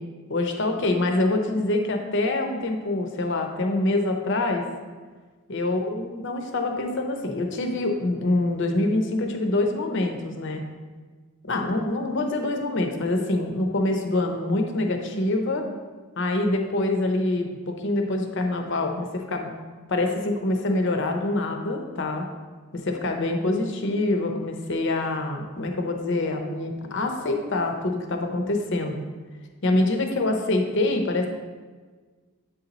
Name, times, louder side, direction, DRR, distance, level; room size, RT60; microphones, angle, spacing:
voice 1, 0.3-4.6 5.5-10.6 11.4-15.7 16.2-19.5 19.9-22.2 22.8-29.0 29.6-31.3, left 2 dB, 55° left, 4 dB, 0.7 m, -25 dB
7.4 x 4.2 x 4.0 m, 1.4 s
head